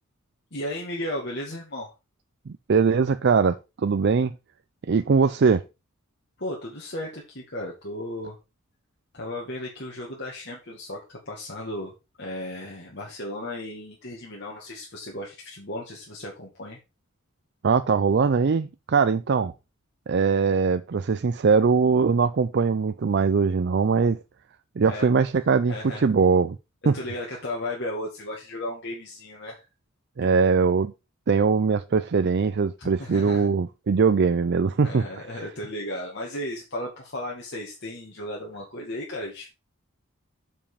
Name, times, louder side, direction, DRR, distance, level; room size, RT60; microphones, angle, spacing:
voice 1, 0.5-1.9 6.4-8.4 9.1-11.9 12.2-16.8 19.3-19.4 24.9-25.0 25.3-26.1 26.9-29.7 32.8-33.5 34.8-39.5, left 1 dB, 55° left, 2.0 m, -35 dB
voice 2, 2.5-4.3 4.9-5.6 17.6-19.5 20.1-24.2 24.8-26.6 26.9-27.0 30.2-30.9 31.3-35.2, right 5 dB, 50° right, 0.4 m, -21 dB
7.5 x 5.3 x 5.0 m
head